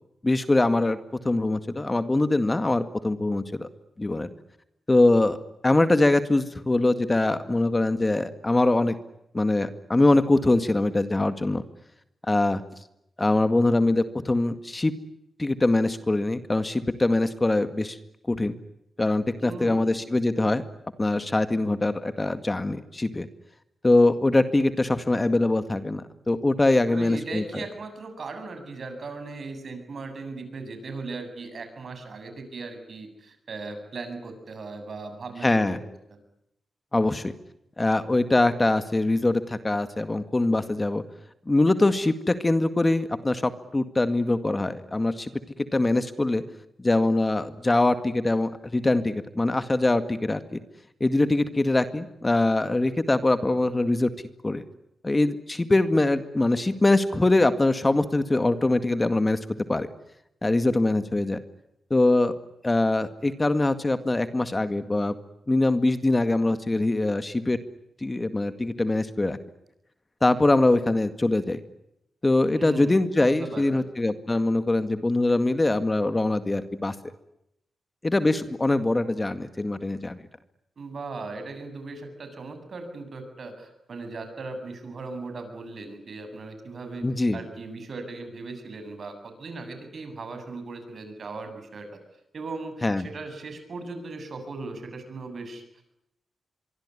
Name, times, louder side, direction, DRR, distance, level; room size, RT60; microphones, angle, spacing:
voice 1, 0.2-1.0 1.2-3.7 4.0-4.3 4.9-5.4 5.6-9.0 9.3-11.6 12.3-12.6 13.2-14.9 15.4-18.0 18.3-18.5 19.0-20.6 21.0-23.3 23.8-27.6 35.4-35.8 36.9-37.3 37.8-41.0 41.5-45.3 45.6-46.4 46.8-50.6 51.0-54.1 54.4-54.6 55.0-59.4 59.7-59.9 60.4-61.4 61.9-62.3 62.6-65.1 65.5-67.6 68.0-69.4 70.2-71.6 72.2-77.0 78.0-80.2 87.0-87.4 92.8-93.1, left 2 dB, 20° left, 10 dB, 2.0 m, -23 dB
voice 2, 19.4-20.0 26.9-35.8 36.1-36.2 72.5-73.8 80.8-87.1 87.3-91.9 92.3-95.8, right 3 dB, 60° right, 8 dB, 8.0 m, -38 dB
25.0 x 24.0 x 9.9 m, 0.81 s
cardioid pair, 85°, 0 cm